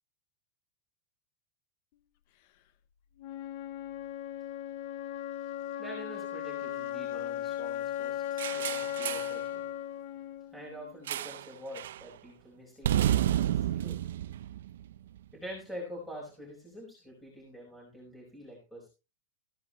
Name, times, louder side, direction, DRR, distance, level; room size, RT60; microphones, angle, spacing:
Wind instrument woodwind instrument, 3.2-11.2, left 11 dB, 40° left, 0.9 m, -37 dB
voice 1, 5.6-9.7 10.5-14.3 15.3-18.9, equal, ahead, -5 dB, 5.2 m, -46 dB
sound 1, 8.4-9.4 11.1-11.5 11.7-12.0 12.8-15.2, right 11 dB, 85° right, 0.6 m, -30 dB
15.5 x 10.5 x 3.2 m, 0.29 s
supercardioid pair, 175°, 0 cm